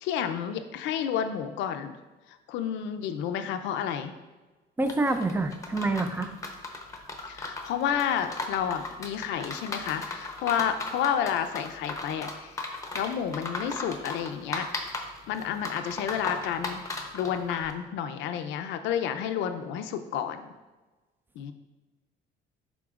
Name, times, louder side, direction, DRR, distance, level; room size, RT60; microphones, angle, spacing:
voice 1, 0.0-1.9 2.5-4.1 7.3-12.7 12.9-14.7 15.3-16.8 17.1-20.5 21.4-21.5, left 8 dB, 75° left, 8 dB, 0.6 m, -30 dB
voice 2, 4.8-6.3, right 2 dB, 10° right, 8 dB, 0.4 m, -27 dB
sound 1, 4.9-17.7, left 2 dB, 15° left, 0.7 m, -37 dB
11.0 x 3.7 x 2.4 m, 1.2 s
cardioid pair, 135°, 19 cm